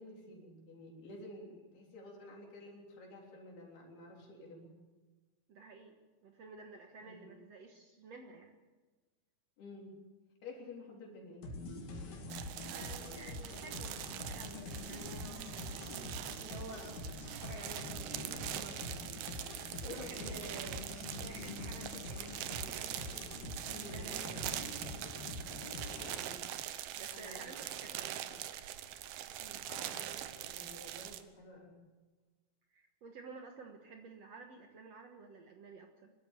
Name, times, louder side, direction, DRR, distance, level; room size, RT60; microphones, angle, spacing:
voice 1, 0.0-4.7 7.0-7.3 9.6-9.9 10.4-11.5 15.7-16.1 19.8-20.8 23.7-24.6 26.1-26.4 27.1-28.3 29.7-31.8, left 2 dB, 80° left, -2 dB, 5.6 m, -51 dB
voice 2, 5.5-6.0 6.2-8.5 12.4-19.0 19.7-20.8 21.2-22.9 23.8-24.9 27.0-28.2 29.4-29.6 32.7-36.1, right 4 dB, 55° right, 3 dB, 1.9 m, -52 dB
sound 1, 11.4-26.2, left 2 dB, 65° left, 3.9 m, -45 dB
sound 2, 12.3-31.2, right 12 dB, 80° right, 2.8 m, -43 dB
24.0 x 13.0 x 8.3 m, 1.3 s
omnidirectional pair, 4.5 m